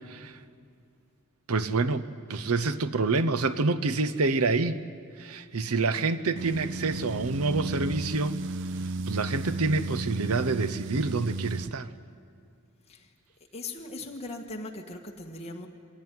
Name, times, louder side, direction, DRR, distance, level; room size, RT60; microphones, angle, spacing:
voice 1, 0.1-0.4 1.5-4.8 5.2-8.4 9.1-11.9, right 3 dB, 75° right, 13 dB, 0.8 m, -27 dB
sound 1, 6.4-11.7, right 2 dB, 55° right, 0.5 m, -34 dB
voice 2, 13.5-15.7, left 2 dB, 30° left, 1 dB, 1.8 m, -39 dB
22.5 x 16.5 x 9.5 m, 2.3 s
head